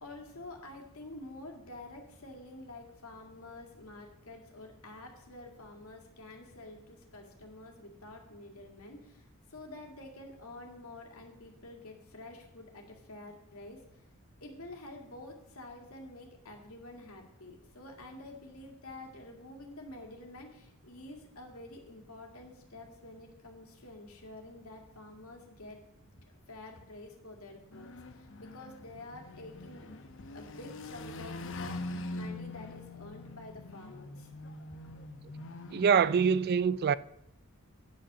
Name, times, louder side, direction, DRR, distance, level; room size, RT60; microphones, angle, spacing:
voice 1, 0.0-14.0 14.4-25.8 26.2-29.9 30.3-34.3 34.7-35.0, left 2 dB, 85° left, 2.2 m, -49 dB
sound 1, 27.7-36.2, left 2 dB, 60° left, 0.9 m, -43 dB
voice 2, 35.7-36.9, right 6 dB, 45° right, 0.3 m, -25 dB
8.6 x 8.4 x 6.1 m
head